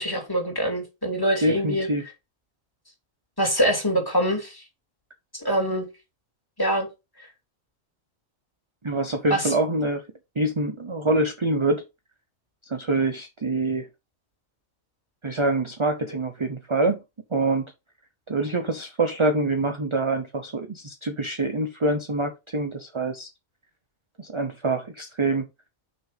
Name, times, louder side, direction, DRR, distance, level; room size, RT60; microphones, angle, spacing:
voice 1, 0.0-1.9 3.4-4.6 5.3-5.9 6.6-6.9 9.3-9.5, equal, 15° left, 2.9 m, -24 dB
voice 2, 1.4-2.0 8.8-10.0 10.4-11.8 12.6-13.9 15.2-17.0 17.3-17.6 18.3-23.3 24.2-25.5, right 2 dB, 25° right, 0.7 m, -25 dB
6.1 x 5.4 x 5.2 m
omnidirectional pair, 1.4 m